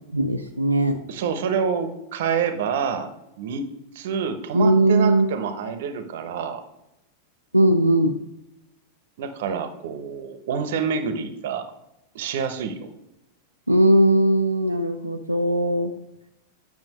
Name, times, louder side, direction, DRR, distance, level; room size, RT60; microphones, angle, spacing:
voice 1, 0.1-1.0 4.5-5.3 7.5-8.2 13.7-15.9, right 1 dB, 90° right, 3 dB, 0.4 m, -19 dB
voice 2, 1.1-3.1 3.4-3.7 3.9-6.6 9.2-11.7 12.1-12.9, right 6 dB, 55° right, 9 dB, 0.8 m, -27 dB
8.8 x 5.8 x 3.0 m, 0.90 s
figure-of-eight pair, 90°, 0 cm